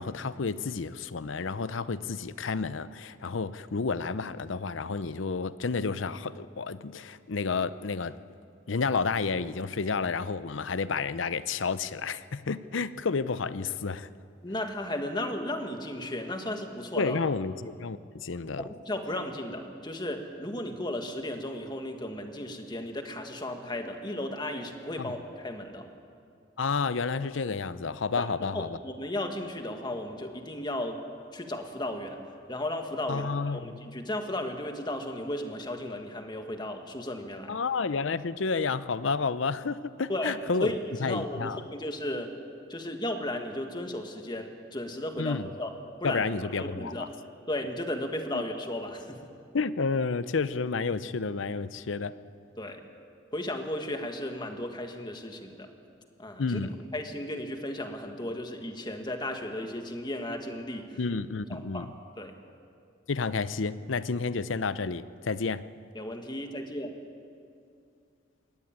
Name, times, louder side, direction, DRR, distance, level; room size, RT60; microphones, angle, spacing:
voice 1, 0.0-8.2 8.7-14.1 16.9-18.7 25.0-25.1 26.6-28.8 33.1-33.7 37.5-40.7 41.0-41.6 45.2-45.5 46.0-47.1 48.3-48.4 49.5-52.2 56.4-56.7 61.0-61.9 63.1-65.6, left 4 dB, 85° left, 15 dB, 0.7 m, -30 dB
voice 2, 14.4-17.2 18.6-25.9 28.2-31.0 31.3-32.2 32.5-37.5 40.1-42.3 42.7-45.7 46.0-46.2 46.6-47.1 47.5-49.2 52.6-52.8 53.3-55.7 56.2-56.6 56.9-61.0 61.5-61.9 62.2-62.3 65.9-66.9, left 1 dB, 25° left, 5 dB, 1.8 m, -35 dB
22.0 x 17.5 x 9.1 m, 2.4 s
head